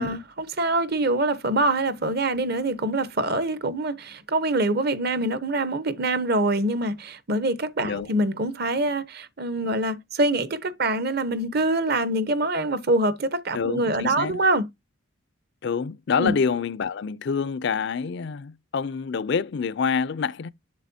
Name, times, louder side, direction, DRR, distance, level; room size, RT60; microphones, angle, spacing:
voice 1, 0.0-14.6 16.2-16.3, right 2 dB, 45° right, 0.9 m, -25 dB
voice 2, 13.5-14.4 15.6-20.5, left 6 dB, 55° left, 0.4 m, -27 dB
7.6 x 7.4 x 2.7 m
head